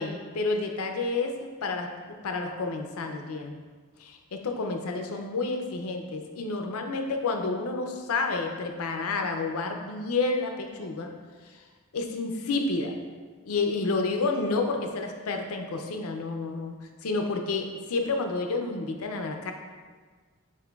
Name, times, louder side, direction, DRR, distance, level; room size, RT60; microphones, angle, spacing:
voice 1, 0.0-1.9 2.2-3.6 4.0-11.1 11.9-12.9 13.5-16.7 17.0-19.5, left 3 dB, 75° left, 4 dB, 0.5 m, -30 dB
7.5 x 2.6 x 2.3 m, 1.5 s
head